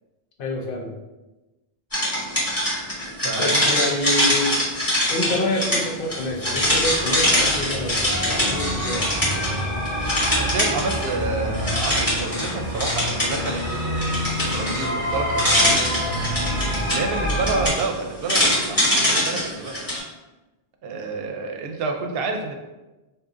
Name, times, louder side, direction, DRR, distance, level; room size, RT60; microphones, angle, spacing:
voice 1, 0.4-0.9 3.4-4.7 5.1-9.1, left 1 dB, 65° left, 0 dB, 0.8 m, -27 dB
sound 1, 1.9-9.6 9.9-11.2 11.5-20.0, left 1 dB, 20° left, 1.0 m, -23 dB
voice 2, 3.2-3.9 10.4-13.6 14.4-15.8 16.9-19.8 20.8-22.6, right 3 dB, 70° right, 3 dB, 0.8 m, -29 dB
sound 2, 6.2-17.7, equal, 20° right, 0.9 m, -28 dB
2.7 x 2.5 x 3.7 m, 1.1 s
omnidirectional pair, 1.0 m